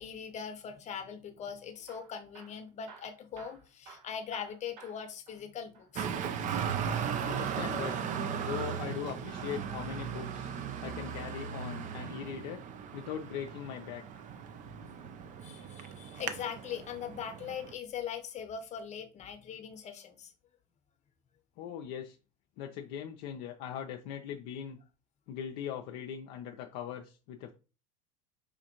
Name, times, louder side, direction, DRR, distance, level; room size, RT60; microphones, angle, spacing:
voice 1, 0.0-6.1 14.8-14.9 15.4-20.3, left 7 dB, 35° left, 0.7 m, -41 dB
Hammer / Drill, 1.7-5.9 6.2-6.5 7.3-8.8 10.5-11.8 13.5-13.9 14.6-15.5 16.2-16.4 16.7-16.8 17.4-17.5, right 5 dB, 75° right, 0.8 m, -57 dB
Traffic noise roadway noise, 6.0-17.7, right 7 dB, 35° right, 0.4 m, -37 dB
voice 2, 7.2-7.9 8.4-10.5 10.8-12.6 12.9-14.2 21.6-22.2 22.6-24.8 25.3-27.5, left 9 dB, 55° left, 0.4 m, -40 dB
4.9 x 2.5 x 2.8 m
hypercardioid pair, 75°, 21 cm